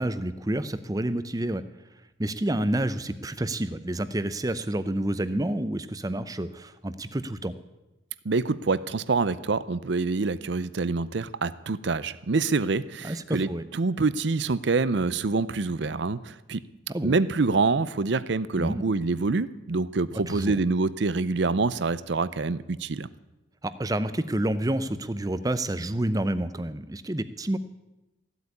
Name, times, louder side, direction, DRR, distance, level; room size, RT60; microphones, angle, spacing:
voice 1, 0.0-1.6 2.2-7.5 13.0-13.7 16.9-17.2 18.6-18.8 20.3-20.5 23.6-27.6, right 1 dB, 20° right, 13 dB, 0.6 m, -29 dB
voice 2, 8.2-16.6 17.0-23.1, right 3 dB, 60° right, 17 dB, 0.6 m, -26 dB
15.5 x 8.1 x 9.7 m, 1.0 s
head